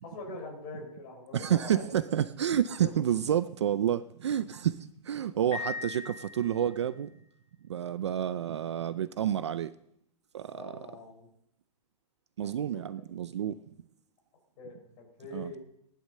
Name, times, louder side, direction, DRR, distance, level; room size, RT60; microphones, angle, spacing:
voice 1, 0.0-1.9 2.8-2.9 10.5-11.3 12.4-12.8 14.6-15.6, left 3 dB, 20° left, 4.1 m, -43 dB
voice 2, 1.3-7.1 7.7-9.7 10.3-10.8 12.4-13.6 15.3-15.5, right 10 dB, 45° right, 0.5 m, -29 dB
Piano, 5.5-7.0, left 4 dB, 50° left, 7.0 m, -39 dB
18.0 x 11.5 x 6.6 m
hypercardioid pair, 175°, 21 cm